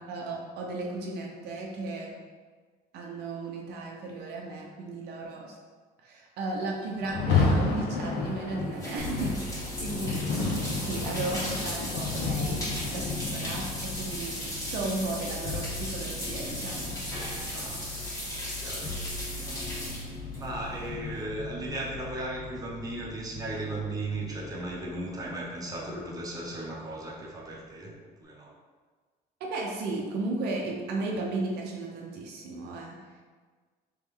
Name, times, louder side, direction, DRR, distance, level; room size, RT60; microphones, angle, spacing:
voice 1, 0.1-2.1 2.9-5.6 6.0-10.2 10.7-12.6 12.9-17.0 29.4-33.0, right 2 dB, 75° right, -1 dB, 0.6 m, -35 dB
Rain, 7.0-16.1, left 4 dB, 85° left, 0.6 m, -31 dB
sound 1, 8.0-21.2, equal, 20° left, 1.5 m, -37 dB
sound 2, 9.0-26.4 26.7-27.5, left 3 dB, 55° left, 0.9 m, -41 dB
voice 2, 17.5-17.9 18.6-19.0 19.5-19.7 20.3-27.9 28.2-28.5, right 2 dB, 20° right, -4 dB, 0.9 m, -36 dB
3.3 x 3.1 x 3.5 m, 1.5 s
cardioid pair, 110°, 17 cm